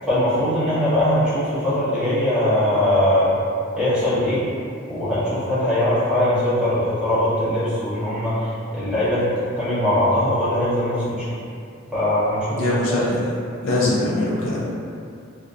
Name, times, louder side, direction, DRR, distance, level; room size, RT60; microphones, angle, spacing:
voice 1, 0.1-3.3 3.8-4.4 4.9-8.4 8.7-9.2 9.5-11.2 11.9-13.0, left 1 dB, 5° right, -13 dB, 0.8 m, -21 dB
voice 2, 12.6-13.3 13.6-14.7, left 2 dB, 80° left, -6 dB, 0.5 m, -22 dB
2.5 x 2.5 x 2.2 m, 2.4 s
head